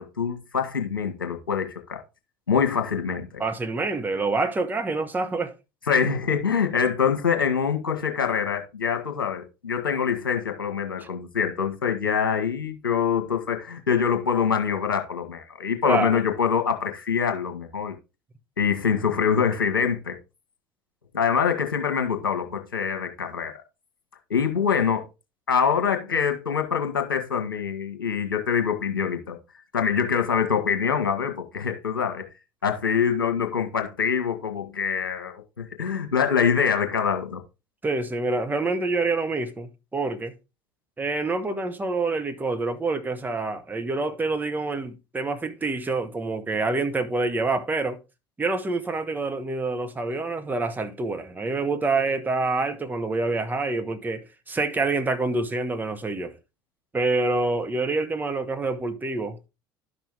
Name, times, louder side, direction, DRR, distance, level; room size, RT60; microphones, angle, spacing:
voice 1, 0.0-2.0 2.5-3.4 5.9-17.9 18.6-20.2 21.1-23.6 24.3-25.1 25.5-29.4 29.7-32.3 32.6-37.4, left 7 dB, 75° left, 1.5 m, -25 dB
voice 2, 3.4-5.5 15.8-16.2 37.8-40.3 41.0-48.0 48.4-56.3 56.9-59.5, right 3 dB, 15° right, 1.3 m, -27 dB
11.0 x 6.0 x 3.6 m
figure-of-eight pair, 65°, 11 cm